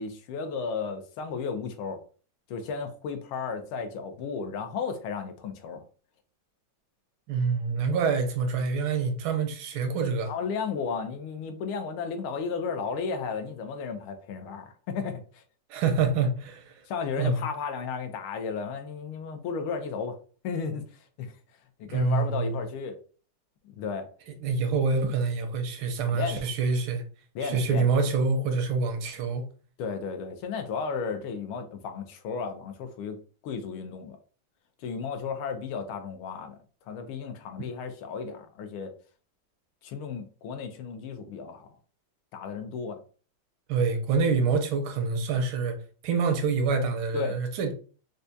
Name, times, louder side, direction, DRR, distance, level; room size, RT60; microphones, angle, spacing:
voice 1, 0.0-2.0 2.5-5.8 10.3-15.4 16.9-20.2 20.4-21.3 21.8-23.0 23.6-24.1 24.4-24.5 26.1-26.4 27.3-27.9 29.8-34.2 34.8-36.6 36.8-38.9 39.8-41.7 42.3-43.0 47.1-47.3, left 5 dB, 85° left, 1.5 m, -34 dB
voice 2, 7.3-10.3 15.7-16.7 17.2-17.4 21.9-22.6 24.4-27.0 27.4-29.5 43.7-45.8 46.0-47.7, right 4 dB, 80° right, 1.4 m, -26 dB
4.6 x 2.2 x 2.6 m
omnidirectional pair, 2.3 m